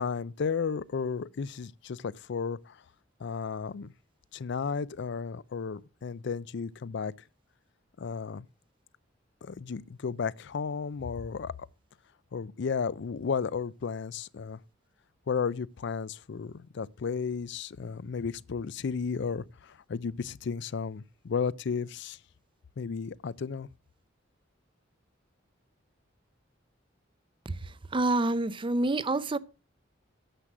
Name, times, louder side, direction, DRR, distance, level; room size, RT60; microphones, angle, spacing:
voice 1, 0.0-2.8 3.2-3.9 4.3-7.1 8.0-8.5 9.4-11.5 12.3-14.6 15.3-22.2 22.8-23.7, left 5 dB, 65° left, 0.4 m, -33 dB
voice 2, 27.5-29.4, right 2 dB, 25° right, 0.6 m, -28 dB
10.0 x 7.6 x 6.0 m
head